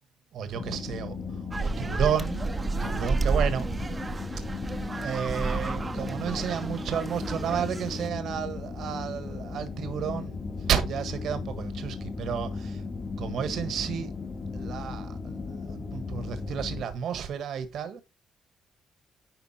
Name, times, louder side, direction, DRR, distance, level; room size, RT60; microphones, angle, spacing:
voice 1, 0.3-2.4 2.8-3.7 5.0-10.4 10.7-12.8 13.2-14.1 14.5-18.0, right 8 dB, 70° right, 1.5 m, -32 dB
sound 1, 0.5-16.8, left 4 dB, 35° left, 2.2 m, -36 dB
sound 2, 1.5-8.1, right 3 dB, 25° right, 0.8 m, -31 dB
10.5 x 3.9 x 4.2 m
cardioid pair, 90°, 0 cm